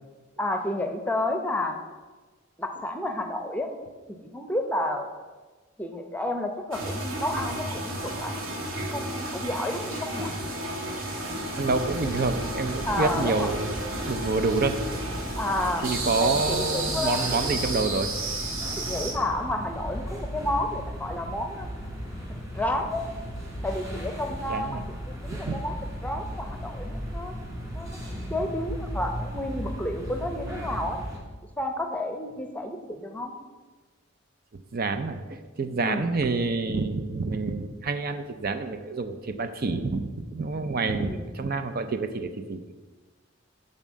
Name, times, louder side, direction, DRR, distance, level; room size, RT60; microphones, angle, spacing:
voice 1, 0.4-1.8 2.6-3.7 4.1-5.1 5.8-8.6 8.9-10.3 12.9-13.5 15.3-15.9 16.2-17.5 18.8-21.7 22.5-23.1 23.6-24.8 25.1-25.7 26.0-27.3 27.7-28.0 28.3-31.0 31.6-33.3 35.8-36.1 40.9-41.3, left 1 dB, 10° left, 5 dB, 0.8 m, -31 dB
sound 1, 6.7-19.1, right 1 dB, 90° right, 1.9 m, -32 dB
sound 2, 11.5-31.2, equal, 15° right, 2.6 m, -36 dB
voice 2, 11.6-13.8 14.0-14.8 15.8-18.1 18.7-18.8 24.5-24.8 25.4-25.6 34.5-42.7, right 3 dB, 50° right, 8 dB, 0.6 m, -28 dB
7.3 x 5.5 x 7.4 m, 1.3 s
head